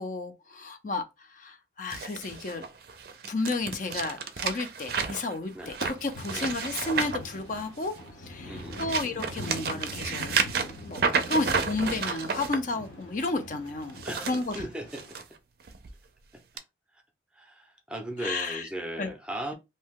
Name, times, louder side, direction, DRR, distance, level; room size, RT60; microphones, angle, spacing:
voice 1, 0.0-2.6 3.3-7.9 8.2-10.4 10.8-11.0 11.3-14.0 14.3-14.5 18.2-18.7 19.0-19.1, left 3 dB, 45° left, 0.5 m, -32 dB
sound 1, 1.9-8.0 8.5-12.6 13.8-15.2 15.7-15.9 16.6-16.7, right 5 dB, 55° right, 0.4 m, -31 dB
sound 2, 5.8-15.2, left 1 dB, 75° left, 0.8 m, -43 dB
voice 2, 8.4-8.9 14.0-15.2 16.3-16.4 16.9-17.0 17.3-19.5, right 1 dB, 5° right, 0.5 m, -38 dB
2.7 x 2.2 x 3.5 m
head